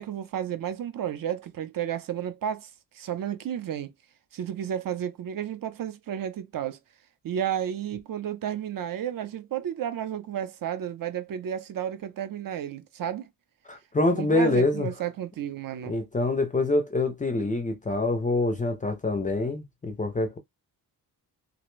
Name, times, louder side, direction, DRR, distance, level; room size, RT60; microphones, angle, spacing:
voice 1, 0.0-2.7 2.9-3.9 4.3-6.8 7.2-13.3 14.1-16.0, right 9 dB, 60° right, 0.6 m, -32 dB
voice 2, 13.7-14.9 15.9-20.4, left 2 dB, 20° left, 0.4 m, -25 dB
2.5 x 2.1 x 3.0 m
wide cardioid pair, 130°, 39 cm